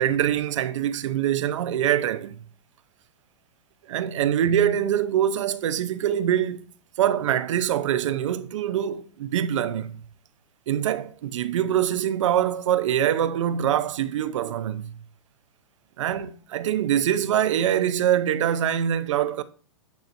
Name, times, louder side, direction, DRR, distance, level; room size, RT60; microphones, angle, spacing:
voice 1, 0.0-2.4 3.9-6.6 7.0-10.0 10.7-15.0 16.0-19.4, right 10 dB, 75° right, 0.7 m, -24 dB
9.3 x 4.3 x 2.6 m
hypercardioid pair, 145°, 16 cm